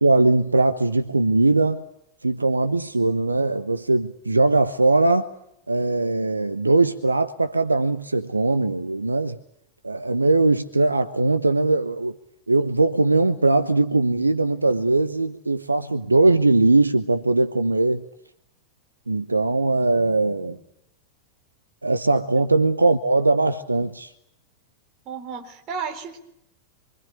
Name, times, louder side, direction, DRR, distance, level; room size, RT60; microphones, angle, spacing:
voice 1, 0.0-1.8 2.2-5.3 5.7-9.4 9.8-12.2 12.5-18.0 19.1-20.6 21.8-24.1, right 2 dB, 80° right, 1.0 m, -20 dB
voice 2, 25.1-26.2, right 5 dB, 35° right, 4.0 m, -35 dB
27.0 x 24.0 x 8.3 m
figure-of-eight pair, 90°, 0 cm